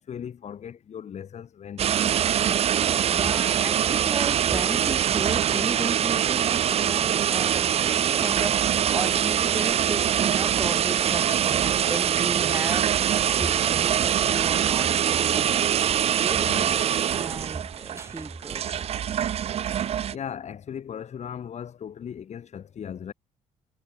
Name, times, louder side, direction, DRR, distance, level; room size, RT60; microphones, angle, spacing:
voice 1, 0.0-2.7 13.6-13.7 16.2-16.9 20.1-23.1, left 8 dB, 55° left, 6.0 m, -38 dB
sound 1, 1.8-20.1, right 9 dB, 50° right, 0.4 m, -23 dB
voice 2, 3.1-15.6 16.2-16.4 17.1-18.9, right 2 dB, 20° right, 5.3 m, -35 dB
cardioid pair, 80°, 14 cm